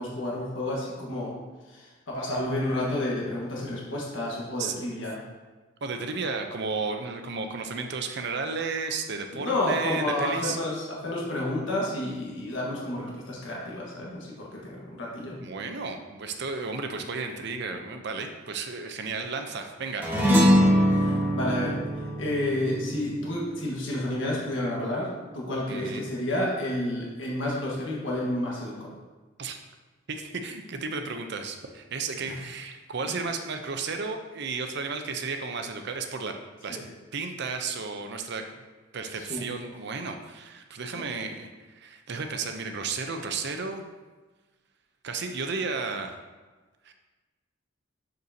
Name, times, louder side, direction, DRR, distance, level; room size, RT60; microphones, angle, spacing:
voice 1, 0.0-1.3 1.7-5.2 9.3-15.4 20.9-21.8 22.2-28.9 32.3-32.4 36.7-36.8 39.2-39.4 40.9-41.0, left 1 dB, 70° left, -4 dB, 1.5 m, -30 dB
voice 2, 5.8-10.6 15.4-20.1 21.1-21.2 25.7-26.1 29.4-29.6 30.1-36.3 36.6-36.8 37.1-38.4 38.9-41.5 41.8-43.8 45.0-46.1 46.8-46.9, right 4 dB, 55° right, 5 dB, 0.6 m, -33 dB
sound 1, 20.0-24.7, equal, 10° right, 1.4 m, -23 dB
6.7 x 6.6 x 2.8 m, 1.3 s
head